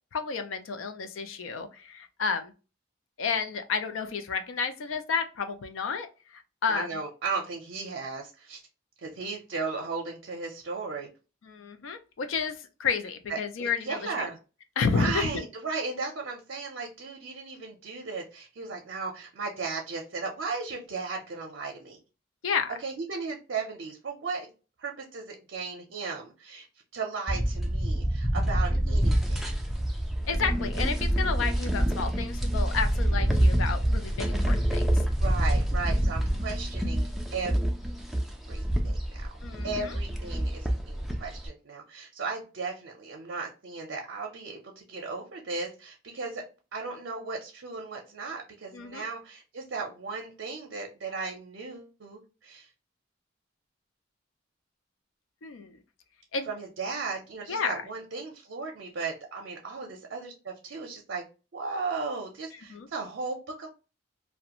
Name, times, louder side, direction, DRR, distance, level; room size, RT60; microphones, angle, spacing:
voice 1, 0.1-2.5 3.2-6.9 11.4-14.3 14.8-15.3 22.4-22.8 28.7-29.0 30.2-35.0 39.4-40.0 48.7-49.1 55.4-55.8 56.3-56.5 57.5-57.7 62.7-62.9, left 5 dB, 85° left, 9 dB, 0.4 m, -31 dB
voice 2, 6.7-8.6 9.0-11.1 13.3-14.4 14.9-22.0 22.8-24.5 24.8-26.7 26.9-29.5 35.2-37.6 38.5-39.3 39.6-46.4 46.7-52.7 56.5-61.2 61.5-63.7, right 4 dB, 65° right, 1 dB, 0.5 m, -36 dB
sound 1, 27.3-41.5, right 1 dB, ahead, 0.3 m, -27 dB
2.4 x 2.1 x 2.8 m, 0.32 s
head